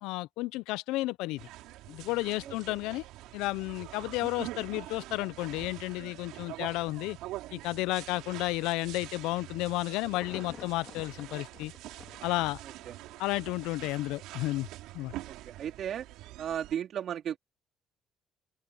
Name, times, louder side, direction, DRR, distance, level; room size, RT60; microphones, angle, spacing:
voice 1, 0.0-1.4 1.9-3.0 3.3-7.2 7.5-11.7 12.2-12.6 13.2-14.7 14.9-15.1, left 20 dB, 80° left, 0.6 m, -32 dB
sound 1, 1.4-16.8, right 16 dB, 75° right, 4.4 m, -45 dB
Insect / Thunder / Rain, 9.5-13.8 14.3-14.4, left 7 dB, 50° left, 4.4 m, -51 dB
voice 2, 15.3-16.1 16.4-17.4, right 9 dB, 60° right, 3.6 m, -35 dB
open air
supercardioid pair, 65°, 0 cm